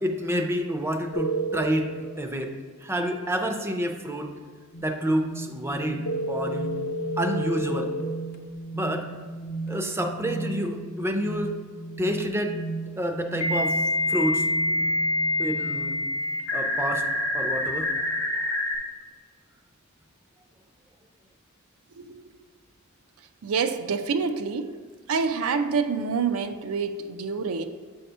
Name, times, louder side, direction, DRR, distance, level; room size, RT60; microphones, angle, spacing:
voice 1, 0.0-1.9 2.2-2.5 2.8-4.4 4.8-6.8 7.2-7.9 8.7-9.1 9.7-11.6 12.0-12.6 13.0-13.8 14.1-14.5 15.4-16.0 16.5-17.1 17.3-18.0, equal, 10° right, 4 dB, 0.4 m, -28 dB
sound 1, 1.1-2.0 6.0-8.0 10.6-10.7 13.4-18.8, left 1 dB, 85° left, 0.9 m, -27 dB
sound 2, 4.7-16.0, right 2 dB, 50° left, 0.6 m, -37 dB
voice 2, 23.4-24.8 25.1-27.6, right 5 dB, 80° right, 9 dB, 0.4 m, -27 dB
7.3 x 2.8 x 5.4 m, 1.5 s
head